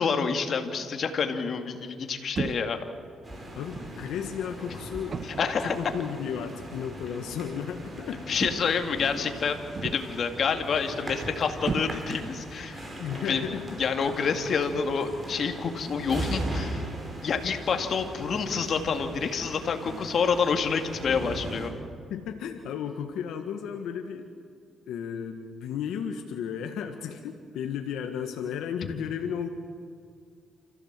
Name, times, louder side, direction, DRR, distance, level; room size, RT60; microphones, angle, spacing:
voice 1, 0.0-2.8 5.2-5.8 8.3-9.5 9.8-12.8 13.3-13.4 13.8-16.9 17.2-21.7 28.8-28.9, left 5 dB, 55° left, 5 dB, 2.2 m, -28 dB
sound 1, 2.4-2.8 3.7-4.0 5.1-5.6 6.7-6.9 8.4-8.9 9.7-10.3 11.7-12.3, right 5 dB, 45° right, 1.0 m, -35 dB
sound 2, 3.2-21.7, right 1 dB, 25° right, 5.9 m, -39 dB
voice 2, 3.5-5.2 5.6-8.3 13.0-13.8 22.1-24.3 24.9-29.5, left 8 dB, 80° left, 5 dB, 1.4 m, -34 dB
28.0 x 15.0 x 7.5 m, 2.3 s
cardioid pair, 90°, 0 cm